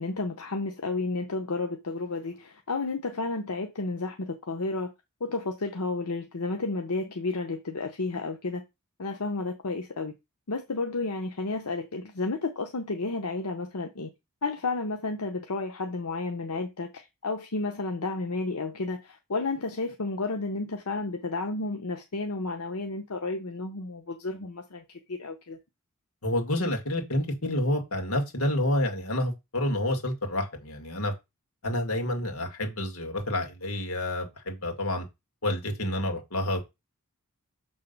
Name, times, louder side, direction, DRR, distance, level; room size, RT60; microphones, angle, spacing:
voice 1, 0.0-4.9 5.2-8.6 9.0-10.1 10.5-14.1 14.4-24.8 25.1-25.6, left 3 dB, 85° left, 0.8 m, -32 dB
voice 2, 26.2-31.1 31.6-35.1 35.4-36.6, left 1 dB, 70° left, 2.0 m, -29 dB
6.8 x 3.6 x 5.3 m
head